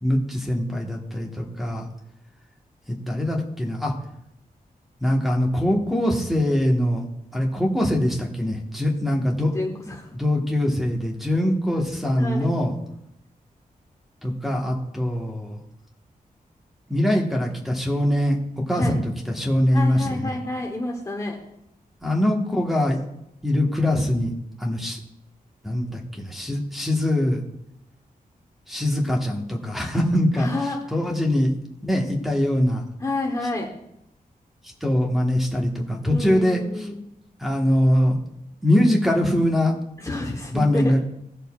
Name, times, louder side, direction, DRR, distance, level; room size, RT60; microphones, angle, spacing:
voice 1, 0.0-1.9 2.9-3.9 5.0-7.0 7.3-9.5 10.1-12.7 14.2-15.6 16.9-18.4 18.7-20.3 22.0-23.0 23.4-24.3 24.6-25.0 25.6-27.4 28.7-30.5 30.9-31.5 31.8-32.8 34.8-36.9 37.4-38.2 38.6-39.7 40.5-41.0, left 1 dB, ahead, -2 dB, 1.3 m, -22 dB
voice 2, 9.5-10.1 12.2-12.5 18.7-19.0 19.7-21.4 30.4-30.8 33.0-33.7 36.0-37.0 40.0-40.9, left 2 dB, 20° left, -1 dB, 1.0 m, -29 dB
17.0 x 6.7 x 2.4 m, 0.81 s
wide cardioid pair, 150°, 15 cm